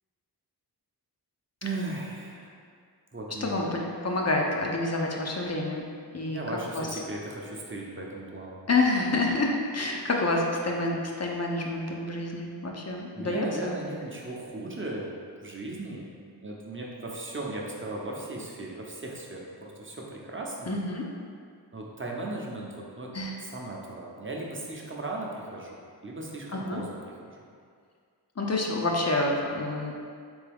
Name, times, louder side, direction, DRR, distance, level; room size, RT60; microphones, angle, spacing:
voice 1, 1.6-2.6 3.1-3.7 6.3-8.6 13.1-15.1 15.4-16.1 16.4-20.7 21.7-23.1 23.4-27.4, right 2 dB, 30° right, -2 dB, 0.7 m, -37 dB
voice 2, 3.4-5.9 6.1-6.4 6.7-7.0 8.7-13.8 20.7-21.0 23.1-23.4 26.5-26.8 28.4-30.0, left 2 dB, 40° left, -1 dB, 0.6 m, -28 dB
3.5 x 3.4 x 3.4 m, 2.1 s
wide cardioid pair, 45°, 41 cm